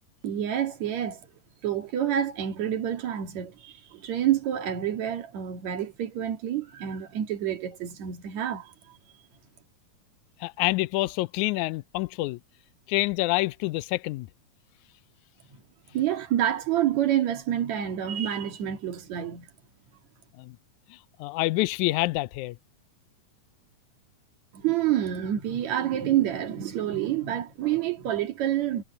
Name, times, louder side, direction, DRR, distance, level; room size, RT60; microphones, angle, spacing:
voice 1, 0.2-1.3 1.6-8.7 15.9-19.5 24.5-28.8, right 11 dB, 55° right, 3.0 m, -28 dB
voice 2, 10.4-12.4 12.9-14.3 20.4-20.6 20.9-22.6, left 20 dB, 85° left, 1.7 m, -27 dB
omnidirectional pair, 4.0 m